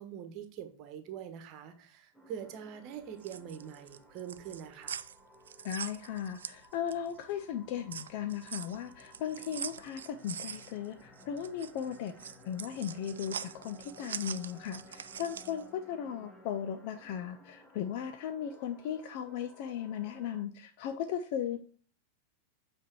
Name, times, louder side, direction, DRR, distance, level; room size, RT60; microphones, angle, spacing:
voice 1, 0.0-5.0, right 9 dB, 40° right, 8 dB, 1.2 m, -44 dB
sound 1, 2.1-20.4, equal, ahead, 1.1 m, -57 dB
sound 2, 3.0-7.2 7.5-15.6, right 8 dB, 65° right, 0.4 m, -43 dB
voice 2, 5.6-21.6, left 9 dB, 45° left, 8 dB, 0.5 m, -37 dB
7.7 x 3.5 x 4.6 m, 0.43 s
figure-of-eight pair, 90°, 0 cm